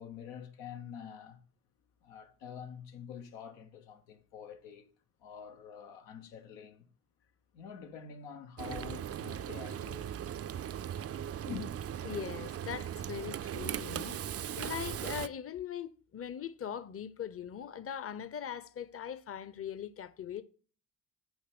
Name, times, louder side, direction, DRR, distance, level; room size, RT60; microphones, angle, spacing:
voice 1, 0.0-1.4 2.0-4.9 5.2-6.9 7.5-10.2 11.4-11.7, left 7 dB, 90° left, 1.1 m, -46 dB
Frying (food), 8.6-15.3, right 10 dB, 35° right, 0.4 m, -38 dB
voice 2, 12.0-20.4, left 9 dB, 30° left, 0.7 m, -41 dB
7.3 x 4.9 x 6.0 m
supercardioid pair, 55°, 43 cm